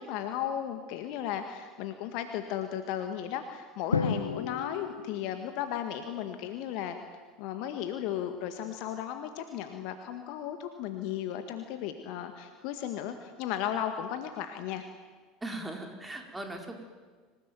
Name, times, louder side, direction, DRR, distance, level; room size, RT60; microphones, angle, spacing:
voice 1, 0.0-7.0 7.4-14.9, left 10 dB, 55° left, 7 dB, 1.8 m, -35 dB
Drum, 3.9-6.1, left 5 dB, 85° left, 1.3 m, -33 dB
voice 2, 15.4-16.7, right 2 dB, 10° right, 3 dB, 4.7 m, -39 dB
26.5 x 18.0 x 9.4 m, 1.5 s
figure-of-eight pair, 70°, 0 cm